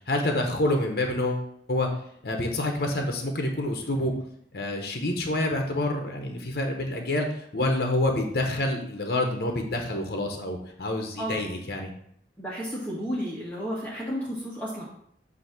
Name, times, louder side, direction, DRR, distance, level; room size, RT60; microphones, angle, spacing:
voice 1, 0.1-1.9 2.2-4.1 4.5-11.9, left 1 dB, 60° left, 2 dB, 0.9 m, -27 dB
voice 2, 12.4-14.8, equal, 10° left, -7 dB, 1.2 m, -32 dB
8.2 x 2.8 x 5.9 m, 0.68 s
head